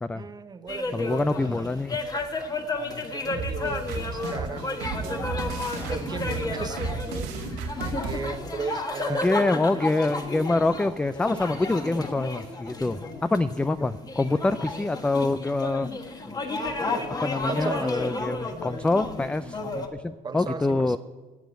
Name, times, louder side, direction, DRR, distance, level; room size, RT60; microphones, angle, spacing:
voice 1, 0.1-1.9 3.1-5.4 5.9-6.8 7.8-9.8 10.4-10.9 17.5-18.0 20.2-21.0, right 5 dB, 25° right, 10 dB, 0.9 m, -36 dB
sound 1, 0.7-19.9, left 2 dB, 20° left, 1.4 m, -32 dB
voice 2, 0.9-2.0 9.1-15.9 17.2-21.0, left 2 dB, 5° left, 13 dB, 0.3 m, -26 dB
sound 2, 3.3-8.2, right 4 dB, 90° right, 2.0 m, -33 dB
12.0 x 8.3 x 9.2 m, 1.3 s
cardioid pair, 130°, 18 cm